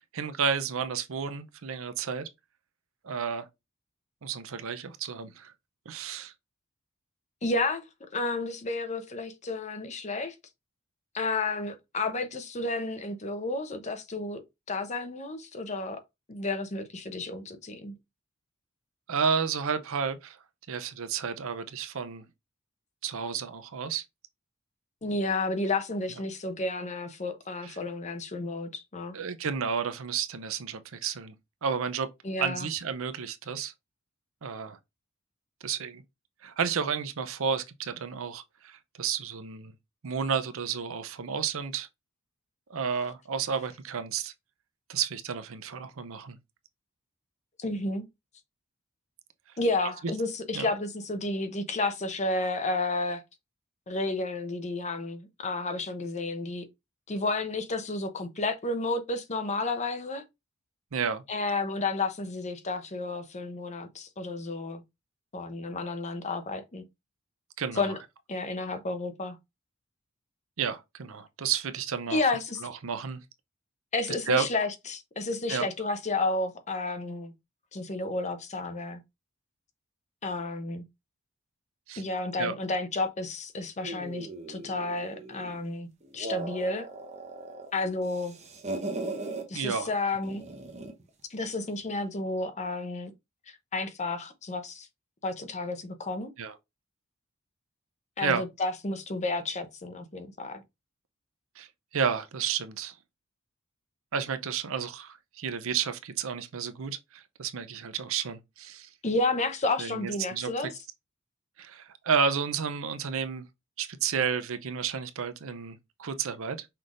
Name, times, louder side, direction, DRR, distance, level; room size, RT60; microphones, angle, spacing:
voice 1, 0.1-2.3 3.0-3.5 4.2-5.5 5.9-6.3 19.1-20.4 20.7-22.2 23.0-24.0 27.6-27.8 29.1-31.3 31.6-32.1 32.4-33.7 34.4-34.8 35.6-36.0 36.4-39.7 40.0-41.9 42.7-44.3 44.9-46.4 50.5-50.7 60.9-61.2 67.6-67.9 70.6-72.2 72.6-73.2 74.3-74.5 75.5-75.7 81.9-82.0 82.4-82.6 89.5-89.9 96.4-96.5 98.2-98.5 101.6-101.7 101.9-102.9 104.1-108.9 109.8-110.5 111.6-113.4 113.8-116.7, right 6 dB, 70° right, 0.6 m, -31 dB
voice 2, 7.4-10.3 11.1-14.4 14.7-16.0 16.3-17.9 25.0-29.1 32.2-32.7 47.6-48.0 49.6-53.2 53.9-56.6 57.1-60.2 61.3-64.8 65.3-66.8 67.7-68.0 68.3-69.4 72.1-72.6 73.9-77.3 77.7-79.0 80.2-80.8 82.0-85.9 86.1-86.9 87.7-88.3 89.5-90.4 91.3-93.1 93.5-94.9 95.2-96.3 98.2-100.6 109.0-110.7, left 2 dB, 35° left, 0.8 m, -31 dB
sound 1, 83.8-85.6 86.0-87.7 88.0-89.5 90.2-91.0, right 2 dB, 35° right, 1.0 m, -38 dB
5.8 x 3.4 x 2.5 m
head